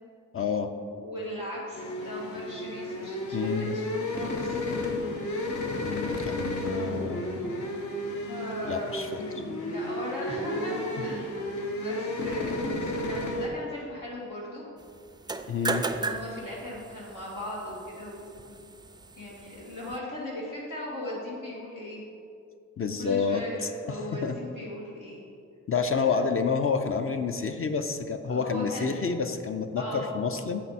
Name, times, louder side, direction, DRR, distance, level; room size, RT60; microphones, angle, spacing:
voice 1, 0.3-0.7 3.3-3.8 5.8-7.2 8.6-9.1 15.5-15.9 22.8-24.4 25.7-30.6, left 5 dB, 45° left, 7 dB, 0.5 m, -29 dB
voice 2, 0.9-3.4 3.7-4.7 8.3-14.6 15.9-18.6 19.2-22.0 23.0-25.2 26.0-26.2 28.3-29.0 29.8-30.1, left 1 dB, 85° left, -6 dB, 1.9 m, -38 dB
sound 1, 1.7-13.5, left 1 dB, 70° left, 1.0 m, -32 dB
sound 2, 15.1-20.0, right 3 dB, 15° right, 0.3 m, -36 dB
7.6 x 5.8 x 4.1 m, 2.4 s
cardioid pair, 75°, 31 cm